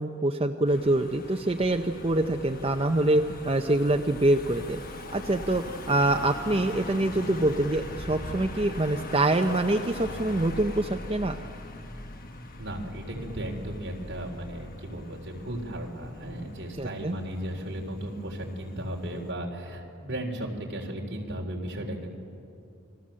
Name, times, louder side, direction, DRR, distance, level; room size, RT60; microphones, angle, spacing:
voice 1, 0.0-4.8 5.1-11.3 16.8-17.2, right 1 dB, 25° right, 4 dB, 0.6 m, -25 dB
Car passing by / Engine, 0.7-19.3, left 2 dB, 40° left, 1.3 m, -41 dB
voice 2, 12.6-22.1, right 1 dB, 55° right, -1 dB, 3.7 m, -35 dB
29.0 x 21.0 x 7.6 m, 2.6 s
head